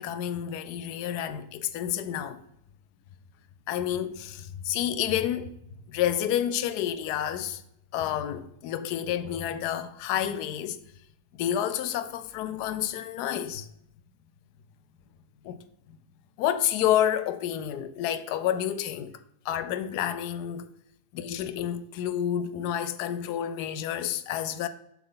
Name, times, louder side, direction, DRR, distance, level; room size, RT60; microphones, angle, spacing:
voice 1, 0.0-2.4 3.7-5.5 5.9-7.6 7.9-10.8 11.3-13.7 15.4-15.6 16.4-19.2 19.4-20.7 21.1-24.7, left 10 dB, 80° left, 1.1 m, -29 dB
6.9 x 6.4 x 3.9 m
omnidirectional pair, 1.7 m